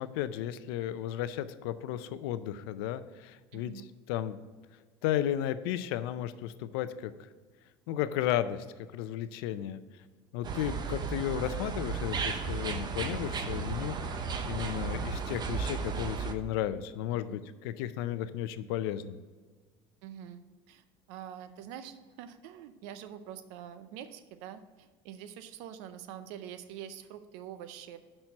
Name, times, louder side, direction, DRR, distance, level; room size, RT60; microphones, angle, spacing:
voice 1, 0.0-3.7 4.1-4.4 5.0-7.1 7.9-8.7 8.9-9.8 10.3-19.2, left 11 dB, 80° left, 13 dB, 0.5 m, -34 dB
voice 2, 3.5-3.9 17.1-17.4 20.0-28.0, right 9 dB, 75° right, 11 dB, 0.6 m, -45 dB
sound 1, 10.4-16.3, right 5 dB, 35° right, 0.7 m, -34 dB
5.9 x 4.4 x 6.4 m, 1.4 s
supercardioid pair, 100°, 12 cm